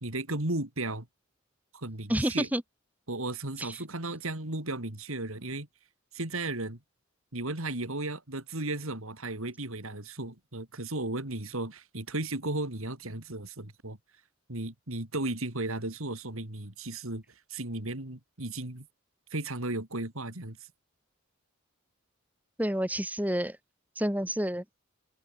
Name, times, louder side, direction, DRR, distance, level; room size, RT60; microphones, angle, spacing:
voice 1, 0.0-1.1 1.7-2.5 3.1-5.7 6.1-6.8 7.3-14.0 14.5-17.2 17.5-18.9 19.3-20.6, right 2 dB, 75° right, 3.5 m, -35 dB
voice 2, 2.1-2.6 3.6-3.8 22.6-23.6 24.0-24.6, equal, 5° right, 5.4 m, -29 dB
head